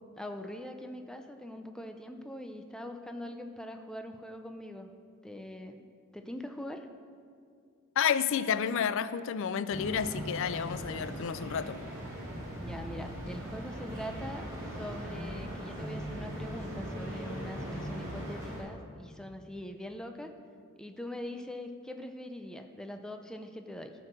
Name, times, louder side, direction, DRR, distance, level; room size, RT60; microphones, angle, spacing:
voice 1, 0.2-4.9 5.2-5.9 6.1-6.9 12.6-14.5 14.7-20.3 20.8-23.9, left 1 dB, 5° left, 5 dB, 0.5 m, -42 dB
voice 2, 8.0-11.8, left 7 dB, 60° left, 14 dB, 0.4 m, -30 dB
sound 1, 9.7-18.6, equal, 15° right, 2.6 m, -39 dB
13.5 x 4.6 x 6.2 m, 2.3 s
head